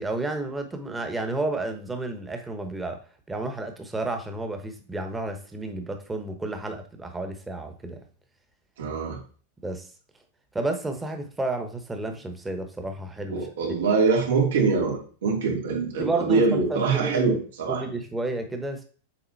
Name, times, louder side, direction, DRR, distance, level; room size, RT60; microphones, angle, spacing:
voice 1, 0.0-3.0 3.3-8.0 9.6-9.9 10.5-13.8 16.0-17.4 17.7-18.8, right 2 dB, 10° right, 6 dB, 1.1 m, -31 dB
voice 2, 8.8-9.2 13.3-17.8, right 4 dB, 85° right, -2 dB, 2.6 m, -24 dB
7.4 x 4.1 x 4.1 m, 0.41 s
supercardioid pair, 145°, 0 cm